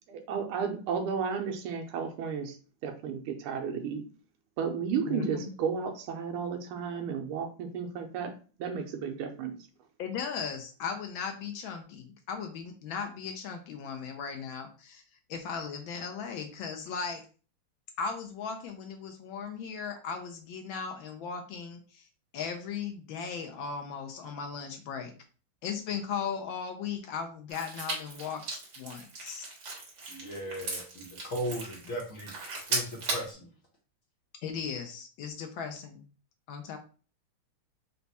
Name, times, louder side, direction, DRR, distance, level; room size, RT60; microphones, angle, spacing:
voice 1, 0.1-2.6 2.8-4.0 4.6-8.3 8.6-9.5, right 6 dB, 85° right, 5 dB, 1.6 m, -33 dB
voice 2, 5.1-5.5 10.0-15.0 15.3-17.2 18.0-22.1 22.3-25.1 25.6-29.5 34.4-36.0 36.5-36.8, left 6 dB, 75° left, 5 dB, 1.3 m, -37 dB
sound 1, 27.5-33.3, right 3 dB, 55° right, 1.6 m, -37 dB
voice 3, 30.1-33.5, equal, 50° left, -1 dB, 1.1 m, -37 dB
4.1 x 2.3 x 4.0 m, 0.37 s
omnidirectional pair, 2.4 m